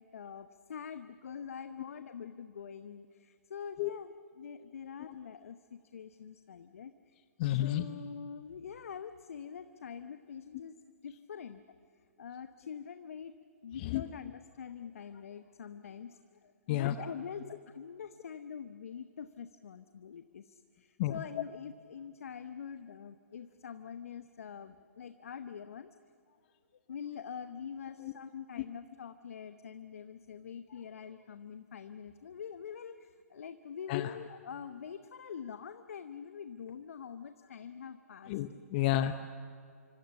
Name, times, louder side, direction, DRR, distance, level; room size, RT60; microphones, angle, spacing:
voice 1, 0.0-10.8 11.0-11.6 12.2-13.3 13.6-25.9 26.3-26.4 26.9-38.3, left 7 dB, 65° left, 10 dB, 1.0 m, -45 dB
voice 2, 7.4-7.8 13.8-14.0 16.7-16.9 21.0-21.2 28.0-28.1 33.9-34.2 38.3-39.3, left 13 dB, 40° left, 10 dB, 1.0 m, -31 dB
27.0 x 24.5 x 7.2 m, 2.4 s
figure-of-eight pair, 120°, 8 cm